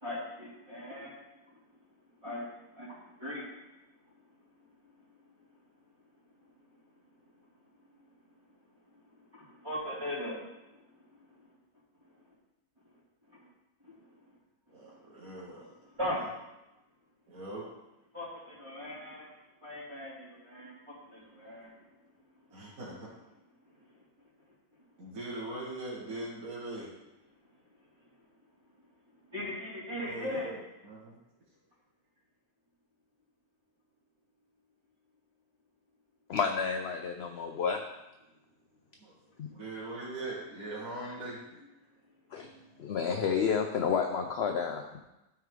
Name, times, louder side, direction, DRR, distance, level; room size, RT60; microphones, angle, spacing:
voice 1, 0.0-1.1 2.2-2.5 2.7-3.4 9.3-10.6 13.8-13.9 15.9-16.2 18.1-19.3 19.6-21.7 29.3-30.5 42.4-42.5 43.1-43.2, left 1 dB, 20° right, -11 dB, 2.6 m, -39 dB
voice 2, 14.7-16.2 17.3-17.7 22.5-23.1 25.0-26.9 30.0-31.2 39.0-39.1 39.5-41.4, right 2 dB, 70° right, -7 dB, 2.0 m, -41 dB
voice 3, 36.3-37.8 39.4-39.5 42.3-42.5 42.8-45.0, left 6 dB, 60° left, 4 dB, 0.7 m, -30 dB
12.5 x 4.6 x 3.7 m, 0.95 s
omnidirectional pair, 1.5 m